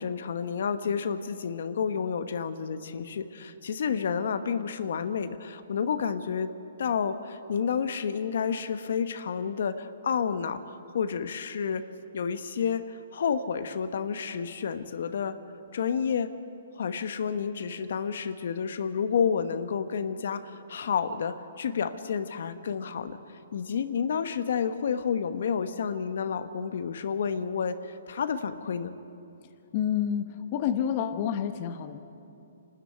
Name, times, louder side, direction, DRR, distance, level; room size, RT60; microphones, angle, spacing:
voice 1, 0.0-6.5 6.8-11.8 12.1-12.8 13.1-15.4 15.7-16.3 16.7-23.2 23.5-28.9, left 6 dB, 65° left, 10 dB, 1.1 m, -30 dB
voice 2, 29.7-30.2 30.5-32.0, left 9 dB, 40° left, 8 dB, 1.0 m, -28 dB
26.0 x 13.0 x 9.1 m, 2.7 s
hypercardioid pair, 150°, 0 cm